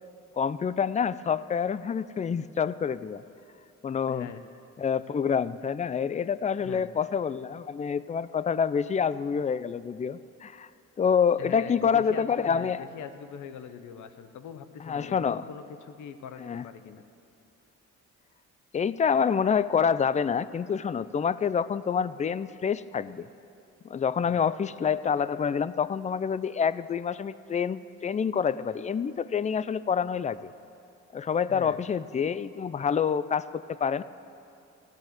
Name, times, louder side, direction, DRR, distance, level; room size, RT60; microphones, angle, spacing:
voice 1, 0.4-3.2 3.8-4.3 4.8-10.7 11.0-12.8 14.8-15.4 16.4-16.6 18.7-23.3 23.9-30.5 31.1-34.0, left 7 dB, 25° left, 16 dB, 0.4 m, -27 dB
voice 2, 4.1-4.4 6.6-6.9 11.4-17.0 24.3-24.5 31.5-31.8, left 8 dB, 75° left, 10 dB, 1.0 m, -42 dB
15.0 x 10.5 x 7.5 m, 2.6 s
cardioid pair, 90°, 30 cm